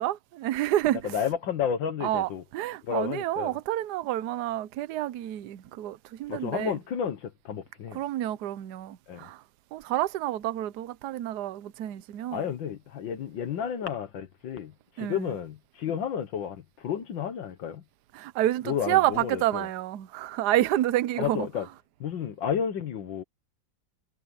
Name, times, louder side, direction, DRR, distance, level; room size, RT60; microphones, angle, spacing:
voice 1, 0.0-1.2 2.0-6.8 7.9-9.4 9.7-12.4 15.0-15.3 18.1-21.5, right 14 dB, 65° right, 1.2 m, -29 dB
voice 2, 1.0-2.4 2.8-3.6 6.3-8.0 9.1-9.3 12.3-17.8 18.7-19.7 21.2-21.7 22.0-23.2, left 8 dB, 80° left, 2.0 m, -31 dB
omnidirectional pair, 2.0 m